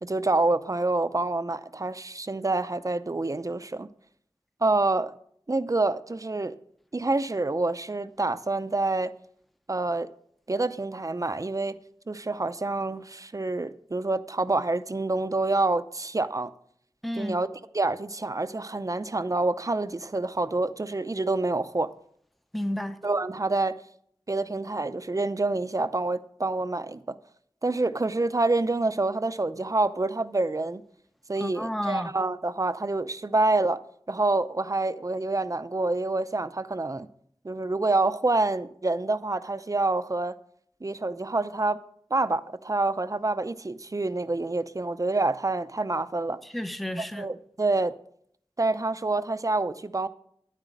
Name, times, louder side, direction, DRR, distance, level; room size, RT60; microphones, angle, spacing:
voice 1, 0.0-3.9 4.6-5.1 5.5-6.6 6.9-9.1 9.7-10.1 10.5-11.8 12.1-16.5 17.2-17.5 17.7-21.9 23.0-23.8 24.3-27.1 27.6-30.8 31.3-33.8 34.1-37.1 37.4-40.3 40.8-41.8 42.1-46.4 47.1-47.9 48.6-50.1, right 2 dB, 35° right, 0.6 m, -27 dB
voice 2, 17.0-17.4 22.5-23.0 31.4-32.1 46.4-47.3, left 1 dB, ahead, 0.7 m, -31 dB
9.9 x 9.1 x 7.3 m
wide cardioid pair, 60°, 9 cm